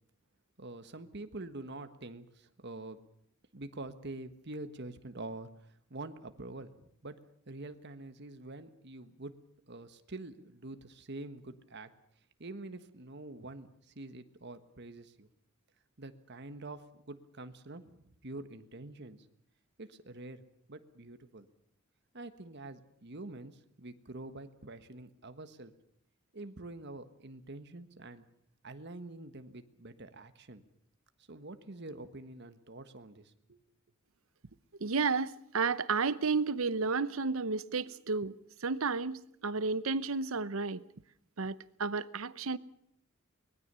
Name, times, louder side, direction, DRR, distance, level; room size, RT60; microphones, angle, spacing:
voice 1, 0.6-3.0 3.5-7.2 7.5-9.3 9.7-11.9 12.4-15.3 16.0-19.2 19.8-20.4 20.7-21.5 22.1-25.7 26.3-28.3 28.6-30.7 31.3-33.6, right 2 dB, 55° right, 1.5 m, -46 dB
voice 2, 34.8-38.3 38.6-40.8 41.4-41.5 41.8-42.6, right 4 dB, 75° right, 0.8 m, -32 dB
24.0 x 20.0 x 6.9 m
head